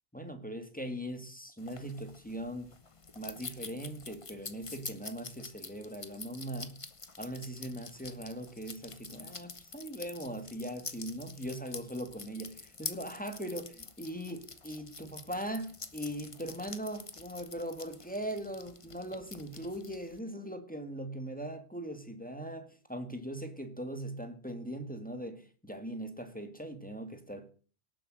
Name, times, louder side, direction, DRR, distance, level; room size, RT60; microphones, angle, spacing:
voice 1, 0.1-2.7 3.1-6.8 7.2-27.5, right 1 dB, 5° left, 1.7 m, -40 dB
sound 1, 1.6-20.2, left 4 dB, 30° left, 1.0 m, -47 dB
18.0 x 7.7 x 6.4 m
omnidirectional pair, 1.2 m